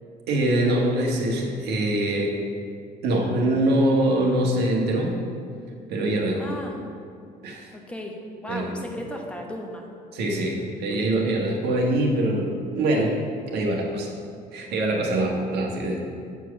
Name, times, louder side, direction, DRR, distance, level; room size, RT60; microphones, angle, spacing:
voice 1, 0.3-2.3 3.0-5.2 5.9-6.5 7.4-7.7 8.5-8.9 10.1-13.2 13.5-14.1 14.5-16.0, right 1 dB, 80° right, 0 dB, 1.5 m, -23 dB
voice 2, 6.4-6.8 7.7-8.2 8.4-9.9, equal, 5° left, 0 dB, 1.1 m, -35 dB
8.2 x 4.6 x 5.9 m, 2.3 s
cardioid pair, 110°, 17 cm